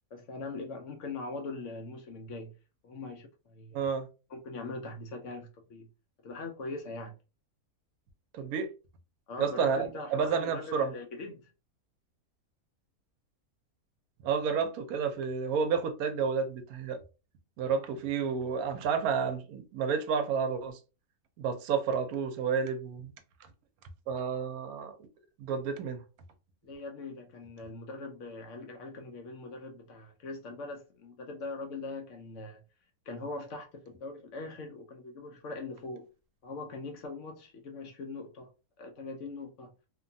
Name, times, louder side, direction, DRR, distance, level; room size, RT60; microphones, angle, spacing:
voice 1, 0.1-2.5 2.8-3.8 4.3-5.9 6.2-7.1 9.3-11.5 26.6-32.6 33.1-36.1 36.4-38.5 38.8-39.7, left 3 dB, 65° left, 0.8 m, -41 dB
voice 2, 3.7-4.1 8.3-8.7 9.4-10.9 14.2-17.0 17.6-20.8 21.4-23.1 24.1-25.1 25.4-26.0, right 6 dB, 80° right, 1.0 m, -30 dB
2.8 x 2.2 x 2.6 m
omnidirectional pair, 1.5 m